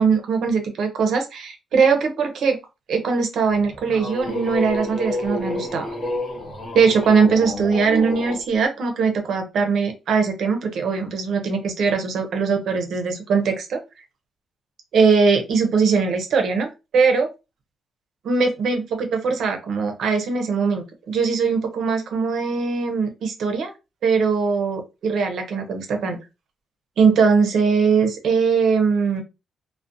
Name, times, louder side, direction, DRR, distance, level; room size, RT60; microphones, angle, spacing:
voice 1, 0.0-2.6 2.9-6.0 6.7-13.8 14.9-17.3 18.2-23.7 24.0-26.2 27.0-29.2, right 5 dB, 60° right, 5 dB, 0.5 m, -21 dB
sound 1, 3.5-8.4, left 1 dB, 20° left, 0.7 m, -29 dB
2.4 x 2.0 x 2.5 m, 0.27 s
wide cardioid pair, 180°, 0 cm